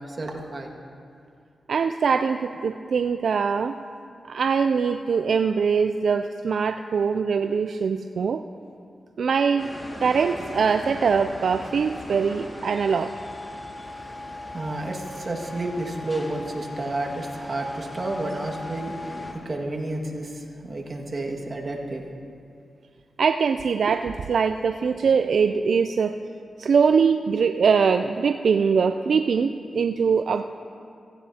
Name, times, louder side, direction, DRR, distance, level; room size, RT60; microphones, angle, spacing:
voice 1, 0.1-0.7 14.5-22.0, right 2 dB, 45° right, 0 dB, 1.8 m, -31 dB
voice 2, 1.7-3.8 4.3-8.4 9.2-9.7 10.0-13.1 23.2-26.3 26.6-30.4, right 6 dB, 75° right, 8 dB, 0.3 m, -22 dB
sound 1, 9.6-19.3, left 1 dB, 20° left, 2.0 m, -38 dB
16.5 x 15.5 x 2.8 m, 2.4 s
cardioid pair, 60°, 0 cm